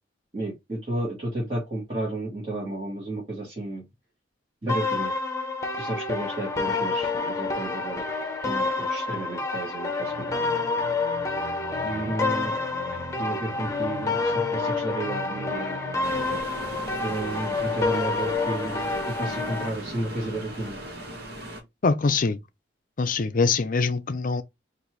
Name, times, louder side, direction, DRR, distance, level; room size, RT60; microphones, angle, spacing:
voice 1, 0.3-3.8 4.6-5.1 5.8-8.0 8.4-10.7 11.8-12.5 13.1-15.8 17.0-20.8, right 1 dB, 30° right, 1.7 m, -32 dB
sound 1, 4.7-19.7, left 3 dB, 15° left, 0.9 m, -28 dB
sound 2, 10.1-16.4, right 3 dB, 85° right, 0.6 m, -41 dB
sound 3, 16.0-21.6, right 1 dB, 55° right, 1.5 m, -37 dB
voice 2, 21.8-22.4 23.0-24.4, left 4 dB, 45° left, 0.5 m, -23 dB
4.1 x 2.6 x 4.5 m
head